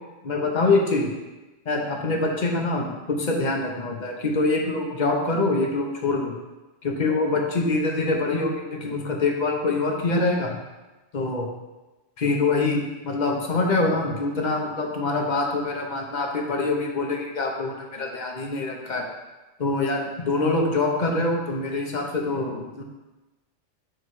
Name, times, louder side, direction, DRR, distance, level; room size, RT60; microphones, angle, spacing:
voice 1, 0.2-1.1 1.7-6.4 6.8-10.6 11.1-11.5 12.2-19.1 19.6-22.8, left 3 dB, 40° left, 1 dB, 0.9 m, -25 dB
7.9 x 3.2 x 4.7 m, 1.1 s
omnidirectional pair, 1.4 m